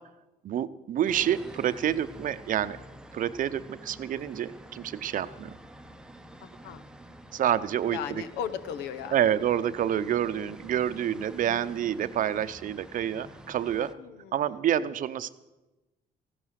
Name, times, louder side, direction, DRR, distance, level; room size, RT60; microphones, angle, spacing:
voice 1, 0.4-2.8 3.1-5.6 7.3-8.2 9.1-13.9 14.3-15.3, right 10 dB, 50° right, 13 dB, 0.7 m, -28 dB
sound 1, 1.0-13.9, right 1 dB, 5° right, 0.8 m, -48 dB
voice 2, 6.4-6.8 7.9-9.2 14.0-14.6, left 8 dB, 85° left, 13 dB, 1.0 m, -37 dB
15.0 x 12.5 x 6.5 m, 1.1 s
cardioid pair, 110°, 17 cm